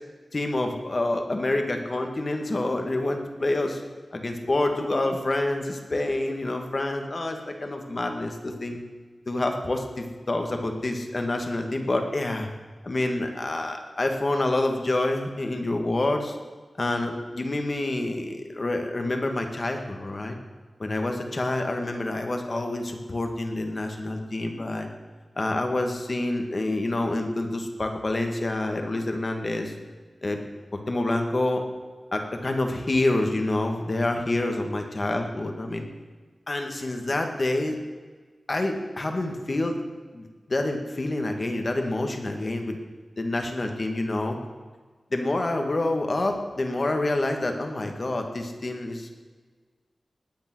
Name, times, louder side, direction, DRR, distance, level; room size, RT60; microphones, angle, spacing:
voice 1, 0.3-3.8 4.1-8.8 9.3-12.5 12.8-16.4 16.8-20.4 20.8-24.9 25.4-29.7 30.2-30.4 30.9-31.6 32.1-35.9 36.5-37.8 38.5-39.8 40.1-42.8 43.2-44.4 45.1-49.1, left 2 dB, 40° left, 4 dB, 2.1 m, -27 dB
20.0 x 9.0 x 6.4 m, 1.4 s
wide cardioid pair, 100°, 0 cm